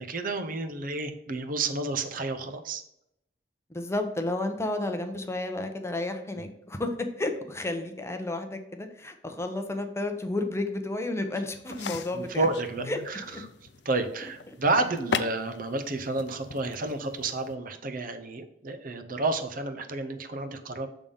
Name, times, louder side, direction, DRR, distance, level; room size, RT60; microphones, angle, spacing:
voice 1, 0.0-2.8 6.4-6.5 12.1-13.2 13.8-20.9, right 3 dB, 50° right, 8 dB, 0.7 m, -30 dB
voice 2, 3.7-12.5 12.9-13.0, left 2 dB, 15° left, 6 dB, 0.7 m, -31 dB
sound 1, 11.7-17.5, left 6 dB, 70° left, 0.5 m, -38 dB
6.7 x 3.6 x 5.4 m, 0.78 s
head